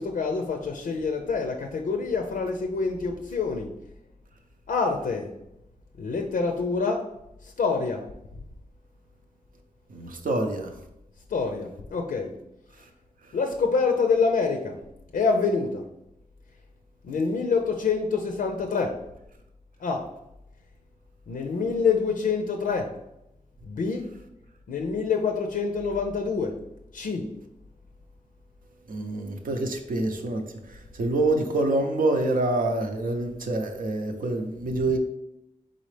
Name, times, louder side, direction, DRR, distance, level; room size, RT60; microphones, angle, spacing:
voice 1, 0.0-3.7 4.7-5.3 6.0-7.1 7.4-8.1 11.3-12.3 13.3-14.8 15.1-15.8 17.0-19.0 19.8-20.1 21.3-22.9 23.6-24.1 24.7-26.6 26.9-27.3, left 4 dB, 90° left, 0.5 m, -26 dB
voice 2, 9.9-10.7 28.9-30.4 30.7-35.0, right 2 dB, 85° right, 0.7 m, -26 dB
4.1 x 3.8 x 3.2 m
cardioid pair, 60°, 14 cm